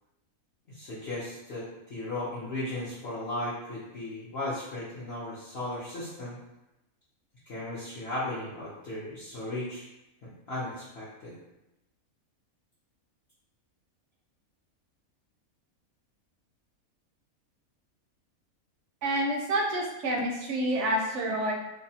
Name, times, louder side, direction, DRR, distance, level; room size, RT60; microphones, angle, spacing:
voice 1, 0.7-1.6 1.9-6.4 7.5-9.8 10.5-11.3, left 1 dB, 55° left, -9 dB, 0.8 m, -36 dB
voice 2, 19.0-21.5, right 1 dB, 65° right, 0 dB, 0.8 m, -28 dB
2.6 x 2.1 x 2.7 m, 0.94 s
omnidirectional pair, 1.5 m